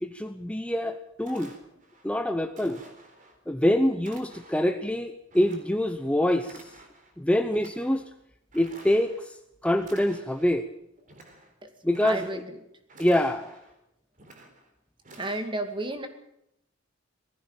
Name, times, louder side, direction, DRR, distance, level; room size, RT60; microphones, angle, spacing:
voice 1, 0.0-1.5 2.0-2.8 3.5-6.7 7.2-8.0 8.5-9.4 9.6-10.7 11.8-12.4 13.0-13.6, left 1 dB, 5° left, 8 dB, 0.8 m, -25 dB
sound 1, 0.7-0.8 1.2-2.0 2.5-3.4 4.0-4.7 5.3-6.1 6.4-7.1 7.5-8.0 8.5-9.3 9.8-10.6 11.0-11.5 11.8-12.6 12.9-13.7 14.2-14.7 15.0-15.4, right 2 dB, 40° right, 3.8 m, -50 dB
voice 2, 12.0-12.4 15.2-16.1, right 2 dB, 25° right, 7 dB, 2.3 m, -32 dB
19.5 x 15.5 x 8.9 m, 0.80 s
head